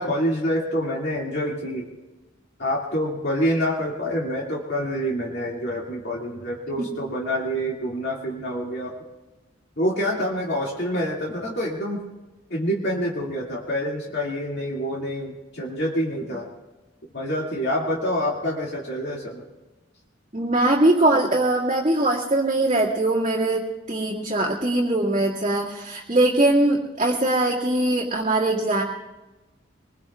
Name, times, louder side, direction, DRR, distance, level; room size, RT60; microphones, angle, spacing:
voice 1, 0.0-1.9 2.6-8.9 9.8-12.0 12.5-16.5 17.1-19.4, equal, 60° left, -3 dB, 2.3 m, -27 dB
voice 2, 20.3-28.8, right 2 dB, 35° right, -7 dB, 2.1 m, -21 dB
25.0 x 21.5 x 2.4 m, 1.1 s
head